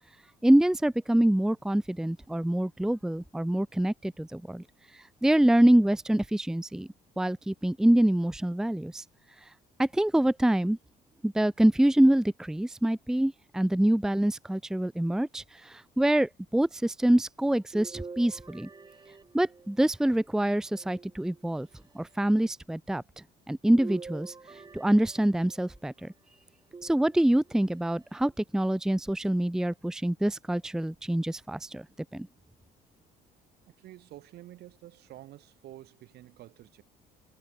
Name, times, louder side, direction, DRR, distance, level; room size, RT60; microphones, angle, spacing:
voice 1, 0.4-4.6 4.9-6.9 7.2-9.0 9.8-10.8 11.2-18.7 19.3-21.7 21.9-23.0 23.5-24.3 24.7-26.1 26.8-31.9 32.1-32.3, right 1 dB, 5° right, 0.7 m, -25 dB
sound 1, 17.7-20.0 20.7-21.7 23.7-25.8 26.7-27.6 28.2-28.3 29.7-29.8, right 4 dB, 25° right, 3.9 m, -46 dB
voice 2, 33.7-36.8, right 15 dB, 75° right, 4.8 m, -49 dB
cardioid pair, 110°, 17 cm